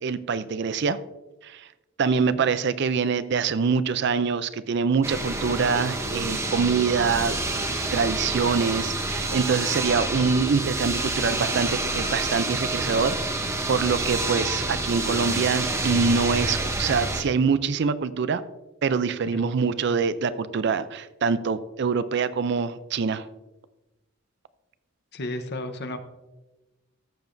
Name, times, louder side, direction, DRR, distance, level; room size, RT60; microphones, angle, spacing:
voice 1, 0.0-1.0 1.4-1.7 2.0-7.6 7.9-13.2 13.7-18.4 18.8-23.2, right 5 dB, 60° right, 15 dB, 0.4 m, -25 dB
voice 2, 2.1-2.5 19.3-19.4 25.1-26.0, left 1 dB, 55° left, 8 dB, 0.9 m, -33 dB
sound 1, 5.0-17.2, right 2 dB, 15° right, 0.8 m, -28 dB
13.5 x 7.0 x 2.6 m, 1.1 s
head